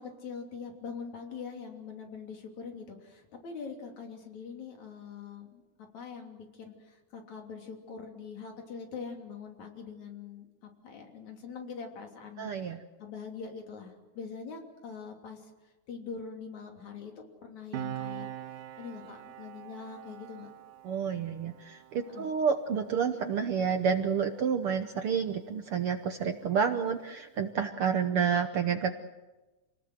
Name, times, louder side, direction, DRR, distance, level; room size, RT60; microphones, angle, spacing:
voice 1, 0.0-5.6 5.9-10.5 10.8-12.7 13.0-15.5 15.9-18.3 18.8-20.5 22.1-22.3, left 5 dB, 65° left, 2 dB, 4.4 m, -43 dB
voice 2, 12.4-12.8 20.8-28.9, right 7 dB, 65° right, 7 dB, 1.5 m, -29 dB
Piano, 17.7-24.8 25.0-25.3, right 11 dB, 80° right, 2.6 m, -44 dB
28.0 x 19.0 x 7.9 m, 1.1 s
omnidirectional pair, 3.5 m